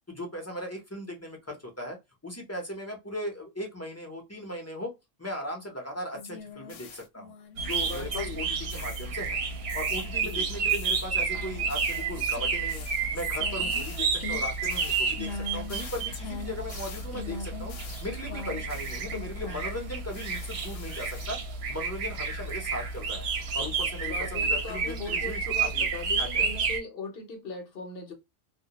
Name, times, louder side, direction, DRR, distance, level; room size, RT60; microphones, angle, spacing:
voice 1, 0.1-2.0 2.2-4.9 5.2-7.3 7.6-9.4 9.7-12.9 13.1-17.7 18.0-21.4 21.7-25.9 26.2-26.5, left 1 dB, 20° left, 0.5 m, -38 dB
sound 1, 6.1-8.4 8.7-9.3 9.7-19.8 20.1-21.3, left 5 dB, 85° left, 0.9 m, -42 dB
sound 2, 7.6-26.8, right 5 dB, 65° right, 0.7 m, -31 dB
voice 2, 7.8-8.4 10.2-10.5 24.1-28.1, left 3 dB, 55° left, 0.8 m, -39 dB
2.1 x 2.1 x 2.8 m
omnidirectional pair, 1.3 m